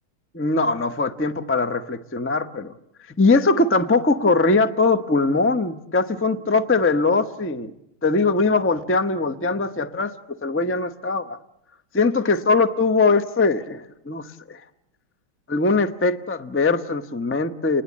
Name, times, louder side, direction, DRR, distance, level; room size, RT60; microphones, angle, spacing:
voice 1, 0.3-2.7 3.2-7.7 8.0-11.4 11.9-14.6 15.5-17.8, left 3 dB, 15° left, 10 dB, 0.5 m, -21 dB
29.5 x 21.0 x 8.6 m, 0.83 s
omnidirectional pair, 2.3 m